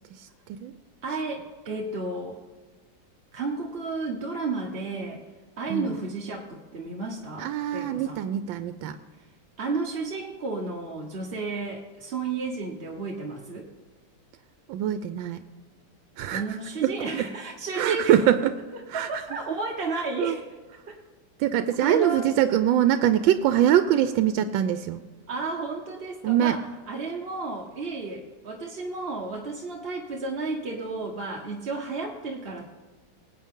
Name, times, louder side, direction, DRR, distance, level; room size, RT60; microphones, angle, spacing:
voice 1, 0.1-0.7 5.7-6.0 7.4-9.0 14.7-15.4 16.2-17.3 17.7-18.5 18.9-19.4 20.2-20.4 21.4-25.0 26.2-26.6, right 11 dB, 85° right, 10 dB, 1.3 m, -24 dB
voice 2, 1.0-2.4 3.3-5.2 5.6-8.2 9.6-13.7 16.3-18.2 18.9-20.4 20.9-21.0 21.8-22.3 25.3-32.7, right 3 dB, 40° right, -1 dB, 1.0 m, -32 dB
20.0 x 8.6 x 3.7 m, 1.4 s
omnidirectional pair, 2.0 m